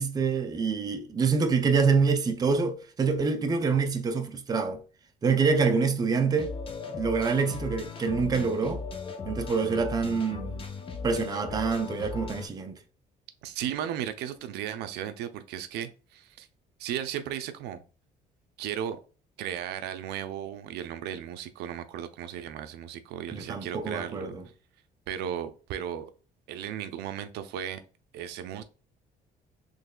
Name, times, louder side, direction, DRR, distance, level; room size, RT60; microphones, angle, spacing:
voice 1, 0.0-4.8 5.2-6.5 6.9-8.8 9.2-10.6 11.0-12.8 23.3-24.5, right 5 dB, 20° right, 0.5 m, -26 dB
sound 1, 6.3-12.5, left 4 dB, 30° left, 0.6 m, -37 dB
voice 2, 13.4-16.5 16.8-17.8 18.6-19.0 19.4-24.3 25.1-26.1 26.5-27.8 28.1-28.6, right 10 dB, 80° right, 0.5 m, -35 dB
3.9 x 3.1 x 2.2 m
cardioid pair, 110°, 17 cm